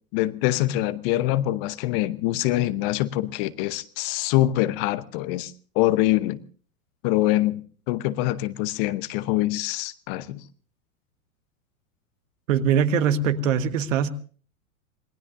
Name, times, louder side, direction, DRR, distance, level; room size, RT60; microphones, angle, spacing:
voice 1, 0.1-6.4 7.0-7.6 7.9-10.4, left 15 dB, 40° left, 0.9 m, -24 dB
voice 2, 12.5-14.1, right 7 dB, 60° right, 1.6 m, -22 dB
27.0 x 19.0 x 2.6 m
hypercardioid pair, 100°, 42 cm